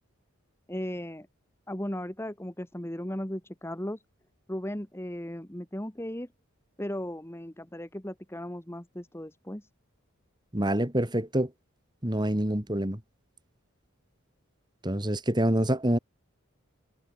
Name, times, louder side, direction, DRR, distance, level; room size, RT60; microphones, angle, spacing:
voice 1, 0.7-1.3 1.7-4.0 4.5-6.3 6.8-9.6, left 1 dB, 10° left, 1.7 m, -36 dB
voice 2, 10.5-11.5 12.0-13.0 14.8-16.0, right 1 dB, 20° right, 2.7 m, -26 dB
head